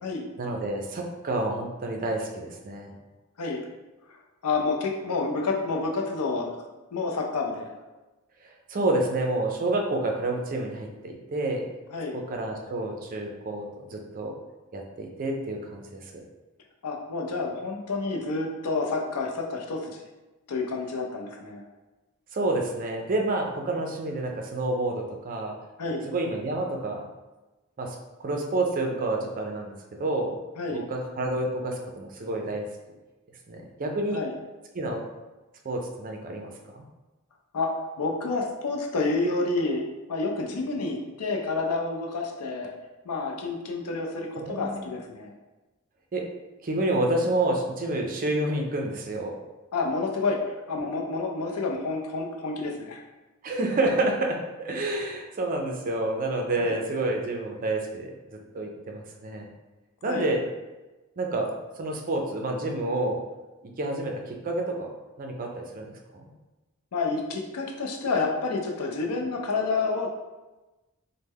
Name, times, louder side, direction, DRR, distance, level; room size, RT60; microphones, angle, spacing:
voice 1, 0.4-2.9 8.4-11.6 12.1-14.3 14.7-16.0 22.3-25.5 26.1-27.0 27.8-27.9 28.2-29.7 30.0-30.4 30.7-32.7 33.5-34.2 34.7-35.0 35.6-36.5 44.4-44.9 46.1-46.2 46.6-49.3 53.4-59.5 60.0-60.4 61.2-61.5 61.8-63.2 63.6-64.9 65.2-66.3, right 2 dB, 40° right, 1 dB, 0.4 m, -29 dB
voice 2, 4.4-6.5 6.9-7.8 11.9-12.1 16.8-20.0 20.5-21.6 25.8-26.0 30.6-30.8 34.1-34.3 37.5-37.7 38.0-39.8 40.1-42.7 43.0-45.3 49.7-53.0 56.6-56.8 60.0-60.2 66.9-70.1, left 3 dB, 85° left, 1 dB, 0.5 m, -29 dB
3.2 x 2.1 x 3.5 m, 1.1 s
head